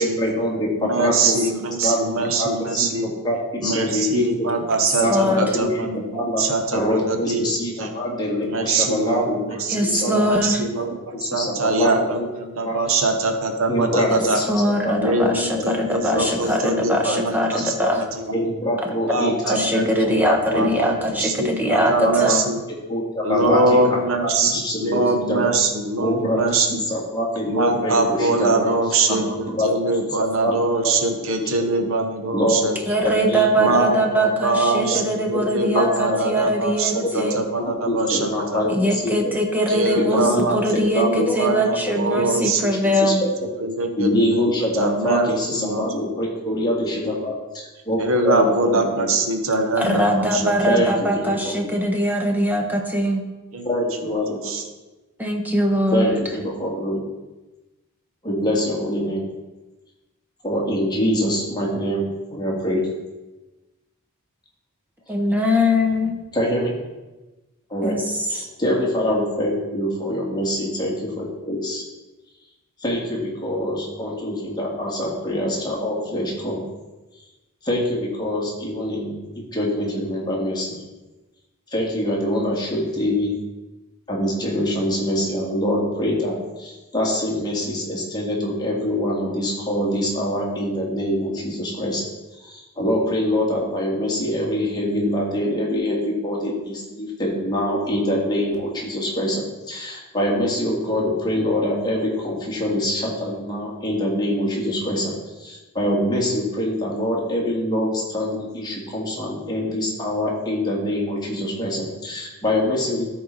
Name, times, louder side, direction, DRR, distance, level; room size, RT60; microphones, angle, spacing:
voice 1, 0.0-1.4 1.8-4.5 5.0-6.4 6.7-10.3 10.7-11.9 12.2-12.3 12.6-13.1 13.7-14.5 14.8-15.1 15.5-15.6 16.1-16.2 16.8-17.1 18.3-20.6 21.7-22.3 22.9-25.5 26.0-29.7 30.4-31.5 32.3-32.6 33.0-33.7 34.9-35.0 35.3-35.5 35.7-36.3 37.0-37.3 37.6-39.4 40.1-40.4 40.7-41.4 42.1-42.2 43.0-43.3 44.0-47.3 47.8-49.1 50.7-51.6 53.6-54.5 55.9-57.0 58.2-59.2 60.4-62.9 66.3-66.8 67.7-68.0 68.3-71.8 72.8-76.6 77.6-80.8 81.7-83.3 84.1-92.0 92.4-105.1 105.4-113.0, equal, 20° left, -3 dB, 2.0 m, -24 dB
voice 2, 0.8-3.1 3.6-6.8 7.1-7.5 7.8-7.9 8.5-9.3 9.8-14.4 15.0-17.7 18.2-18.3 19.1-20.2 20.5-22.6 23.2-24.5 24.8-26.8 27.5-32.7 33.6-38.6 39.7-42.7 43.6-44.5 44.8-45.8 48.0-50.5 53.5-53.7 54.5-54.6, right 2 dB, 65° right, 5 dB, 1.1 m, -23 dB
voice 3, 4.8-5.4 9.7-10.6 14.1-14.2 14.5-18.0 19.5-22.5 32.9-37.4 38.7-43.2 49.8-53.2 55.2-56.2 65.1-66.2 67.8-68.4, equal, 10° right, 2 dB, 1.0 m, -22 dB
13.0 x 4.6 x 4.0 m, 1.1 s
head